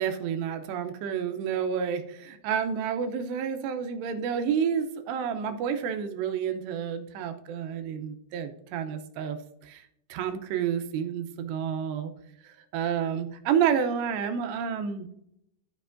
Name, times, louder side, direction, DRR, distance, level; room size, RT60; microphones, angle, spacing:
voice 1, 0.0-9.4 9.6-9.8 10.1-12.1 12.7-15.1, right 7 dB, 80° right, 7 dB, 2.6 m, -29 dB
14.0 x 5.9 x 2.5 m, 0.78 s
omnidirectional pair, 5.4 m